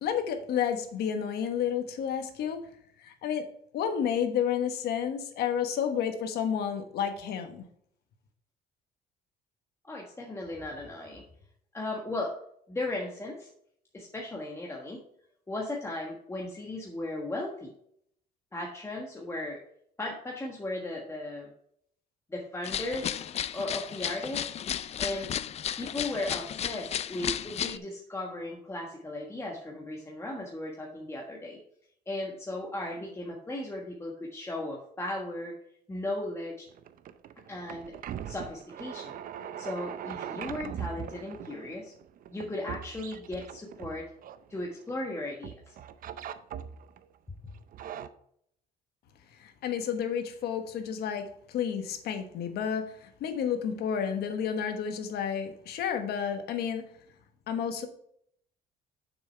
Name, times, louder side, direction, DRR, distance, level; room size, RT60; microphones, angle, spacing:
voice 1, 0.0-2.6 3.0-3.5 3.7-7.6 49.4-56.8 57.5-57.9, left 8 dB, 70° left, 7 dB, 1.3 m, -31 dB
voice 2, 9.9-11.2 11.7-12.3 12.7-13.5 13.9-15.0 15.5-17.7 18.5-19.6 20.0-21.5 22.3-23.2 23.5-24.4 25.0-25.3 25.8-31.6 32.1-35.6 35.9-36.7 37.5-37.9 38.3-39.1 39.6-41.9 42.3-44.0 44.5-45.7 47.4-47.5, left 2 dB, 15° left, -2 dB, 1.5 m, -36 dB
sound 1, 22.6-27.8, left 9 dB, 40° left, 0.4 m, -34 dB
sound 2, 36.7-45.1 45.4-47.0 47.5-48.1, right 9 dB, 55° right, 0.6 m, -41 dB
7.2 x 6.2 x 4.5 m, 0.69 s
cardioid pair, 110°, 17 cm